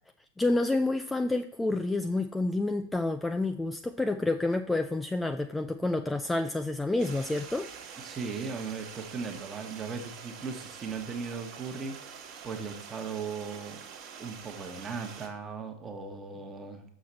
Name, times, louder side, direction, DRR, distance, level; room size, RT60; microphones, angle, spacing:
voice 1, 0.4-7.7, left 2 dB, 5° left, 7 dB, 0.3 m, -29 dB
Stream, 7.0-15.3, right 7 dB, 40° right, 1.4 m, -46 dB
voice 2, 8.0-13.8 14.2-16.8, right 5 dB, 20° right, 5 dB, 1.2 m, -38 dB
6.9 x 6.2 x 4.2 m, 0.67 s
figure-of-eight pair, 90°, 0 cm